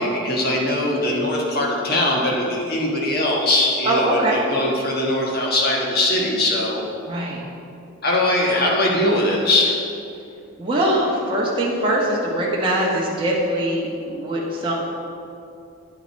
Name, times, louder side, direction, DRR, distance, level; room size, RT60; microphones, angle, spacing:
voice 1, 0.0-6.8 8.0-9.8, left 1 dB, 45° left, -2 dB, 1.4 m, -21 dB
voice 2, 3.8-4.4 7.1-7.4 10.6-14.7, right 1 dB, 25° right, -5 dB, 1.1 m, -22 dB
9.5 x 5.7 x 4.5 m, 2.6 s
head